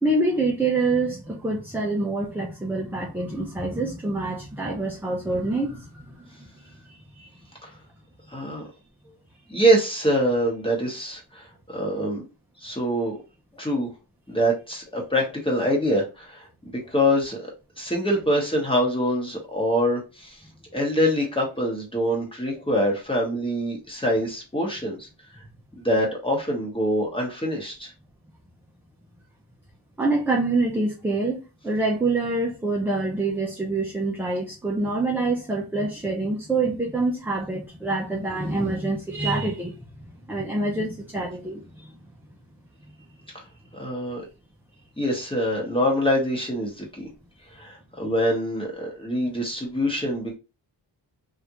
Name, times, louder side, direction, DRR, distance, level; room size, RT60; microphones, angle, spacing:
voice 1, 0.0-6.5 30.0-39.8 40.1-41.9, right 2 dB, 5° right, 0.4 m, -26 dB
voice 2, 6.9-7.3 7.6-7.7 8.3-8.6 9.5-12.2 12.6-13.2 13.5-13.9 14.3-16.5 16.9-17.5 17.8-20.4 20.7-25.1 25.8-27.9 43.3-43.4 43.7-44.2 45.0-47.1 47.5-50.4, equal, 10° left, 1.0 m, -25 dB
3.5 x 2.5 x 2.8 m
wide cardioid pair, 165°, 44 cm